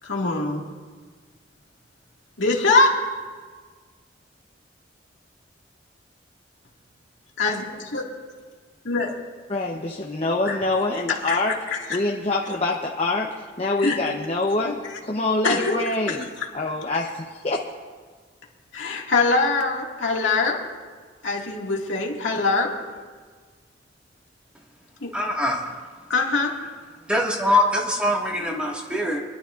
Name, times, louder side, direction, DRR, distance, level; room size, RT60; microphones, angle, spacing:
voice 1, 0.0-0.7 2.4-3.0 7.4-8.0 8.8-9.1 10.4-10.6 11.1-11.4 11.7-12.0 13.8-14.0 15.4-15.8 16.1-16.2 18.7-20.6 21.2-22.7 25.0-25.1 26.1-26.6, left 3 dB, 85° left, -1 dB, 2.1 m, -23 dB
voice 2, 9.5-11.5 11.9-16.3 16.5-17.6, left 2 dB, 35° left, -1 dB, 0.9 m, -25 dB
voice 3, 25.1-25.8 27.1-29.2, left 1 dB, 5° right, -2 dB, 1.8 m, -23 dB
26.0 x 12.0 x 2.5 m, 1.5 s
head